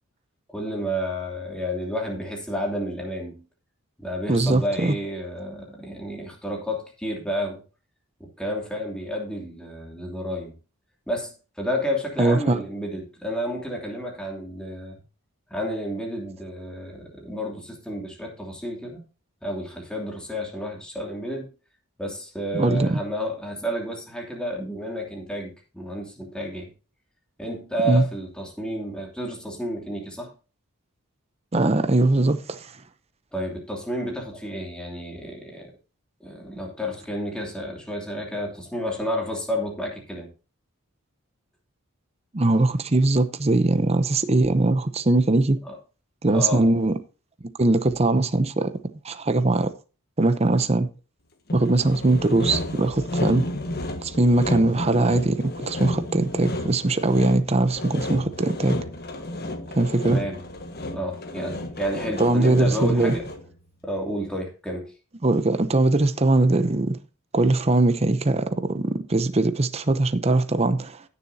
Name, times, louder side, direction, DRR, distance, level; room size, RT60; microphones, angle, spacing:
voice 1, 0.5-3.4 4.0-7.6 8.2-10.5 11.1-15.0 15.5-19.0 19.4-21.5 22.0-26.7 27.4-30.3 33.3-35.7 36.2-40.3 45.6-45.7 46.3-46.6 60.0-60.4 60.9-63.3 63.8-64.9, equal, 5° left, 2.8 m, -31 dB
voice 2, 4.3-4.9 12.2-12.6 22.5-23.0 27.9-28.0 31.5-32.7 42.3-45.6 46.2-46.9 47.6-48.7 49.0-49.7 50.2-50.9 51.5-53.4 54.0-58.8 59.7-60.2 62.2-63.1 65.2-67.0 67.3-71.0, right 2 dB, 30° right, 0.7 m, -21 dB
Sawing, 51.5-63.5, left 1 dB, 45° left, 1.5 m, -32 dB
16.0 x 7.1 x 2.8 m
head